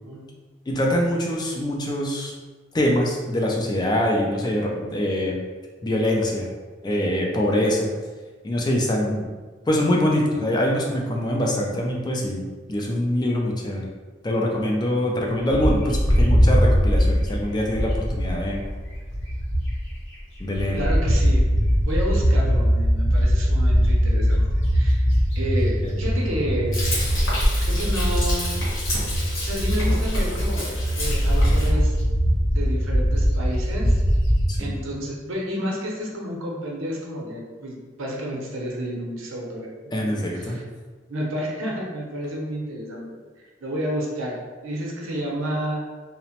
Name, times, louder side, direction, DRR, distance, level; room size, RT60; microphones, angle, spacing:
voice 1, 0.7-2.3 2.7-5.4 5.8-6.5 6.8-7.9 8.4-9.3 9.7-12.4 12.7-13.9 14.2-18.6 20.4-20.8 25.8-25.9 34.5-34.7 39.9-40.6, left 1 dB, 20° left, -1 dB, 0.3 m, -24 dB
Bird, 15.5-20.0 20.4-34.6, equal, 65° left, 0.7 m, -21 dB
voice 2, 20.7-21.4 21.8-24.4 24.7-25.0 25.3-26.8 27.6-28.5 29.1-30.7 31.0-31.9 32.5-34.0 34.6-40.6 41.1-43.2 43.6-44.4 44.6-45.9, equal, 90° right, -2 dB, 0.7 m, -30 dB
Frying (food), 26.7-31.7, equal, 85° left, 1.0 m, -27 dB
2.8 x 2.1 x 2.8 m, 1.4 s
head